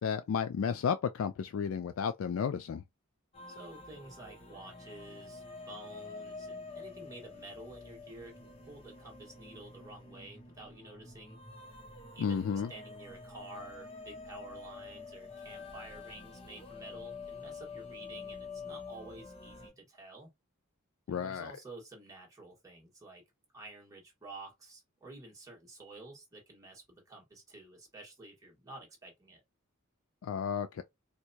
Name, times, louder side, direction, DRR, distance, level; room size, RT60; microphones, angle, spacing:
voice 1, 0.0-2.8 12.2-12.7 21.1-21.5 30.2-30.8, left 7 dB, 65° left, 0.3 m, -32 dB
sound 1, 3.3-19.7, left 4 dB, 25° left, 0.8 m, -48 dB
voice 2, 3.5-11.4 12.1-20.3 21.1-23.2 23.5-29.4, right 2 dB, 15° right, 1.3 m, -50 dB
4.5 x 2.2 x 2.7 m
head